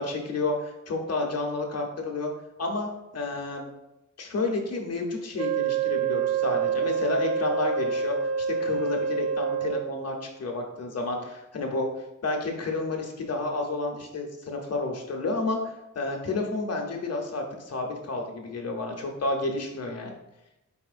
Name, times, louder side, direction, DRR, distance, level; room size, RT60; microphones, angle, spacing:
voice 1, 0.0-2.3 2.6-3.6 4.2-11.9 12.2-20.1, left 2 dB, 50° left, 2 dB, 0.7 m, -30 dB
Wind instrument woodwind instrument, 5.4-10.0, right 6 dB, 25° right, 0.4 m, -27 dB
4.2 x 4.1 x 2.4 m, 0.91 s
wide cardioid pair, 160°, 32 cm